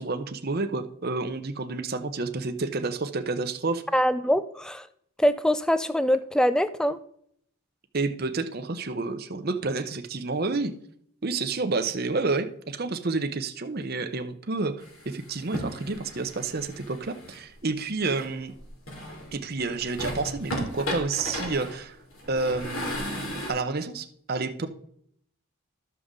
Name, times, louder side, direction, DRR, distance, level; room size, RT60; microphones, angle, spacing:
voice 1, 0.0-3.8 7.9-10.7 11.2-18.5 19.3-22.0 22.3-24.7, right 3 dB, 45° right, 8 dB, 0.8 m, -30 dB
voice 2, 3.9-4.9 5.2-7.0, equal, 5° left, 12 dB, 0.3 m, -23 dB
sound 1, 14.8-17.4 18.1-19.4 19.7-23.5, equal, 70° left, 2.8 m, -35 dB
12.0 x 6.7 x 3.7 m, 0.68 s
head